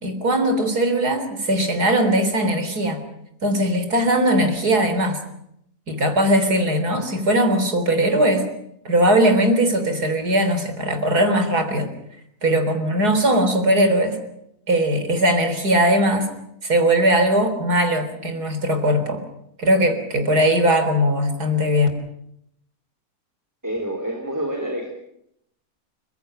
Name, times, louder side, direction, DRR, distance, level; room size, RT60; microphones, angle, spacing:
voice 1, 0.0-3.0 3.4-5.2 5.9-8.4 8.9-11.9 12.4-14.2 14.7-16.3 16.6-19.2 19.6-21.9, right 1 dB, 90° right, 8 dB, 4.3 m, -19 dB
voice 2, 23.6-24.9, equal, 10° right, 2 dB, 3.9 m, -27 dB
29.0 x 16.0 x 9.2 m, 0.76 s
omnidirectional pair, 1.6 m